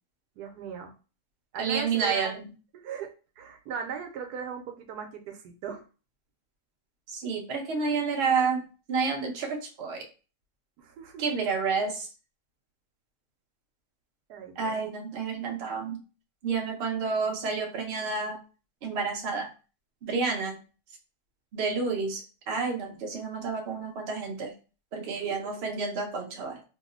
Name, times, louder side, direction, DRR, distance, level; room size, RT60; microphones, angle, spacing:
voice 1, 0.4-0.9 1.5-2.4 2.7-5.8 10.8-11.2 14.3-14.8 25.3-25.4, right 7 dB, 85° right, 4 dB, 1.2 m, -38 dB
voice 2, 1.6-2.4 7.1-10.0 11.2-12.1 14.6-16.0 16.4-18.4 18.8-19.5 20.0-20.6 21.5-24.5 24.9-26.6, right 5 dB, 55° right, 2 dB, 0.8 m, -30 dB
2.9 x 2.0 x 3.7 m, 0.34 s
omnidirectional pair, 1.7 m